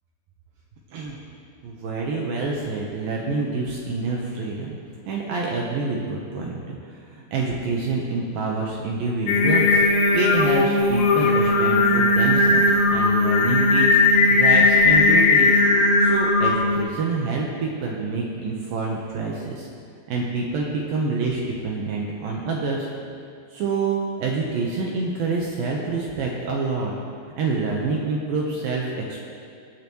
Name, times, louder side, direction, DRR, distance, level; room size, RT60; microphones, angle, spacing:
voice 1, 1.6-4.8 5.1-9.8 10.1-15.5 16.0-19.7 20.1-22.9 23.5-26.9 27.4-29.2, right 3 dB, 70° right, -2 dB, 2.3 m, -27 dB
Singing, 9.3-16.8, left 3 dB, 70° left, 3.3 m, -18 dB
22.0 x 8.8 x 3.1 m, 2.3 s
omnidirectional pair, 5.1 m